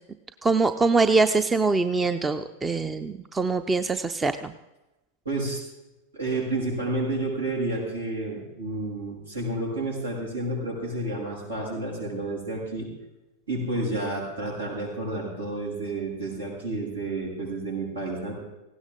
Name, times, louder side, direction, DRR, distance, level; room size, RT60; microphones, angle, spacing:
voice 1, 0.4-4.5, right 3 dB, 15° right, 11 dB, 0.7 m, -23 dB
voice 2, 5.2-5.6 6.1-12.9 13.5-18.4, right 2 dB, 75° right, -3 dB, 7.9 m, -30 dB
19.0 x 16.5 x 3.8 m, 0.99 s
figure-of-eight pair, 90°, 0 cm